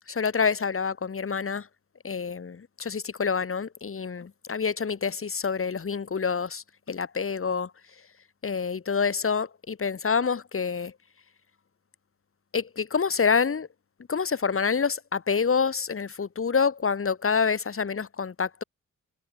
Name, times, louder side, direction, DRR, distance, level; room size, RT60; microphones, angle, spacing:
voice 1, 0.1-1.7 2.0-7.7 8.4-10.9 12.5-13.7 14.1-18.6, left 5 dB, 45° left, 2.5 m, -27 dB
cardioid pair, 65°, 32 cm